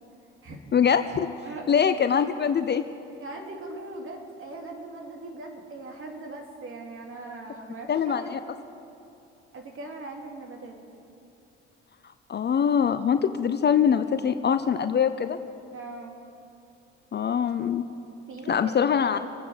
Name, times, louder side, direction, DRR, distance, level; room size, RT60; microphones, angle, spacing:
voice 1, 0.7-1.3 1.7-2.8 7.9-8.4 12.3-15.4 17.1-17.8 18.5-19.3, left 7 dB, 30° left, 10 dB, 0.7 m, -23 dB
voice 2, 3.2-8.3 9.5-10.7 15.7-16.2 18.3-18.8, right 2 dB, 40° right, 1 dB, 3.0 m, -40 dB
25.0 x 9.4 x 5.1 m, 2.8 s
hypercardioid pair, 65°, 33 cm